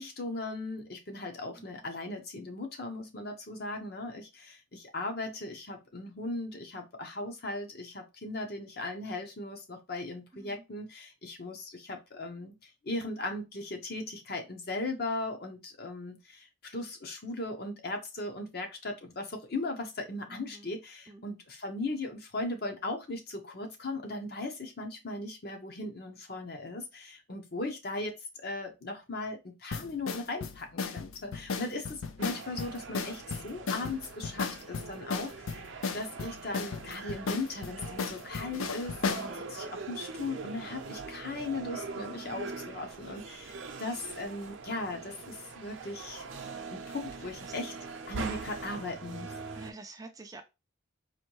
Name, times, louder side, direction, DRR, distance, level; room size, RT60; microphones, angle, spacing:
voice 1, 0.0-35.6 35.9-46.3 46.7-47.7 48.1-49.3, left 2 dB, 50° left, 5 dB, 0.8 m, -38 dB
voice 2, 1.6-1.9 10.3-10.6 20.3-20.7 21.1-21.2 47.4-47.5 49.6-50.4, right 3 dB, 15° right, 6 dB, 0.3 m, -48 dB
sound 1, 29.7-39.3, left 5 dB, 85° left, 0.5 m, -35 dB
sound 2, 32.2-49.7, right 4 dB, 65° right, 0.6 m, -43 dB
4.3 x 2.6 x 3.0 m, 0.25 s
head